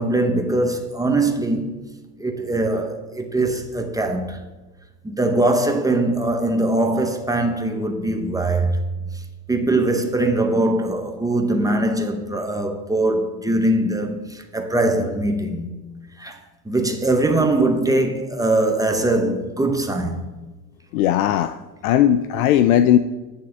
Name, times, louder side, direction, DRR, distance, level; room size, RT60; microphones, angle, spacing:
voice 1, 0.0-1.7 2.2-4.4 5.0-8.8 9.5-15.7 16.2-16.4 16.7-20.2, right 2 dB, 5° right, 0.7 m, -21 dB
voice 2, 20.9-21.5 21.8-23.0, left 11 dB, 60° left, 0.5 m, -17 dB
9.2 x 3.6 x 6.6 m
hypercardioid pair, 90°, 48 cm